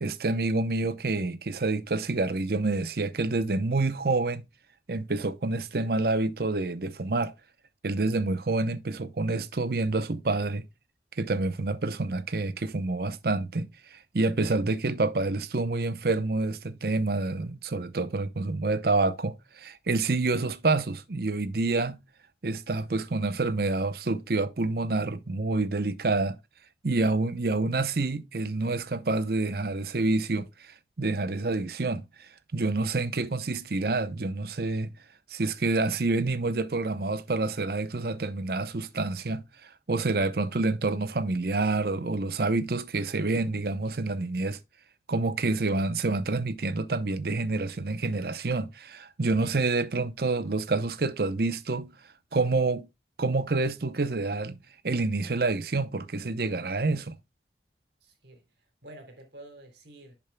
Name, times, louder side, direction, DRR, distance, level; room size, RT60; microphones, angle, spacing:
voice 1, 0.0-4.5 4.9-7.3 7.8-10.6 11.2-22.0 22.4-26.4 26.8-34.9 35.3-44.6 45.1-51.9 52.3-52.9 53.2-57.2, right 3 dB, 55° right, 0.7 m, -28 dB
voice 2, 58.0-60.2, right 1 dB, 75° right, 3.1 m, -49 dB
10.5 x 7.1 x 2.2 m
head